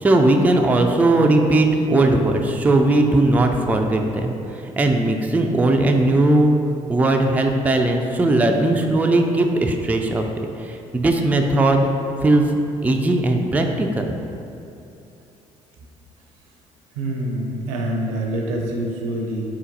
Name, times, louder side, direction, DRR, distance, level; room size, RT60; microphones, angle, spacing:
voice 1, 0.0-4.3 4.8-6.5 6.9-10.2 10.6-11.9 12.2-12.4 12.8-14.0, right 2 dB, 10° right, 3 dB, 0.3 m, -18 dB
voice 2, 16.9-19.5, right 1 dB, 75° right, 0 dB, 0.5 m, -26 dB
4.3 x 3.8 x 2.7 m, 2.7 s
figure-of-eight pair, 50°, 17 cm